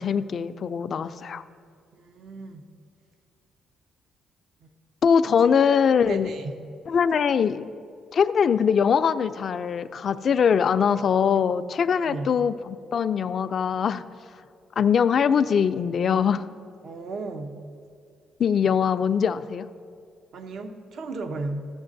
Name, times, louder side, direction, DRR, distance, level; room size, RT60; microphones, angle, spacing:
voice 1, 0.0-1.4 5.0-6.3 6.9-7.7 8.1-14.0 14.8-16.5 18.4-19.7, left 7 dB, 55° left, 12 dB, 0.3 m, -22 dB
voice 2, 2.0-2.6 6.0-6.4 12.0-12.3 16.8-17.5 20.3-21.7, right 3 dB, 65° right, 7 dB, 0.7 m, -34 dB
14.0 x 7.3 x 2.6 m, 2.2 s
cardioid pair, 90°, 0 cm